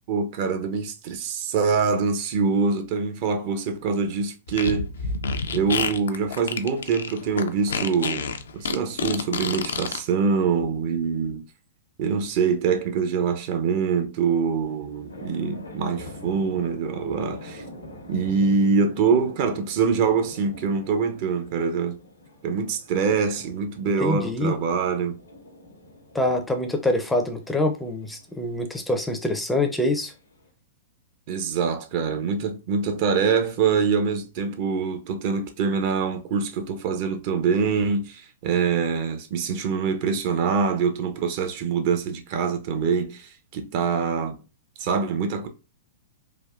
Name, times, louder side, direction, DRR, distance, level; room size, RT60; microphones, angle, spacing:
voice 1, 0.1-4.9 5.5-11.4 12.0-17.6 18.1-22.0 22.4-25.2 31.3-44.4 44.8-45.5, right 5 dB, 50° right, 0.6 m, -24 dB
Fart, 4.5-10.0, left 5 dB, 75° left, 0.4 m, -28 dB
sound 1, 14.2-30.5, left 1 dB, 90° left, 0.8 m, -46 dB
voice 2, 24.0-24.5 26.1-30.1, left 1 dB, 5° left, 0.4 m, -25 dB
3.4 x 2.2 x 2.4 m
hypercardioid pair, 110°, 0 cm